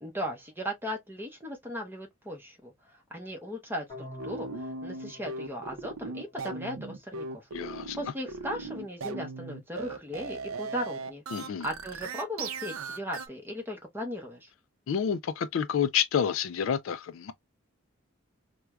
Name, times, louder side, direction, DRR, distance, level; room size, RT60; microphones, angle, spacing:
voice 1, 0.0-11.2 11.6-14.5, equal, 10° right, 0.8 m, -37 dB
sound 1, 3.9-6.9, left 1 dB, 20° left, 1.7 m, -47 dB
sound 2, 4.2-13.3, right 3 dB, 80° right, 0.6 m, -38 dB
voice 2, 7.5-8.0 11.3-11.7 14.9-17.3, left 8 dB, 65° left, 0.3 m, -29 dB
4.4 x 2.2 x 2.3 m
head